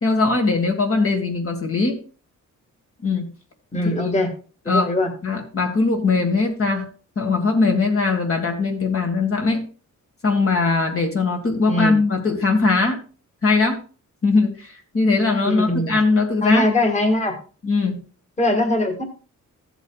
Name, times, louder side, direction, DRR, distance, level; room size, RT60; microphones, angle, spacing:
voice 1, 0.0-2.0 3.0-3.3 3.8-4.1 4.7-4.9 5.2-6.9 7.2-9.7 10.2-13.0 13.4-13.8 14.2-16.7 17.6-18.0, left 3 dB, 45° left, 2 dB, 1.8 m, -20 dB
voice 2, 3.7-4.3 4.7-5.1 11.7-12.0 15.4-16.0 16.4-17.4 18.4-19.0, left 1 dB, 20° left, 4 dB, 1.8 m, -21 dB
15.0 x 8.0 x 2.4 m, 0.37 s
wide cardioid pair, 125°, 31 cm